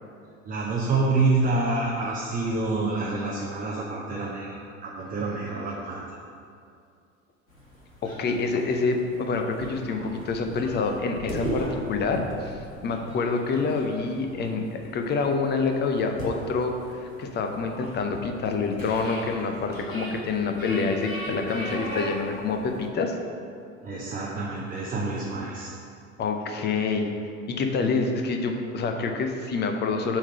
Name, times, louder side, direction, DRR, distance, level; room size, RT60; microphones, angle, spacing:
voice 1, 0.5-6.0 23.8-25.7, right 3 dB, 20° right, -3 dB, 0.8 m, -27 dB
sound 1, 7.5-22.9, equal, 90° left, 1.1 m, -38 dB
voice 2, 8.0-23.1 26.2-27.1 27.5-30.2, left 4 dB, 25° left, 4 dB, 0.7 m, -27 dB
7.1 x 3.7 x 5.7 m, 2.4 s
figure-of-eight pair, 70°, 39 cm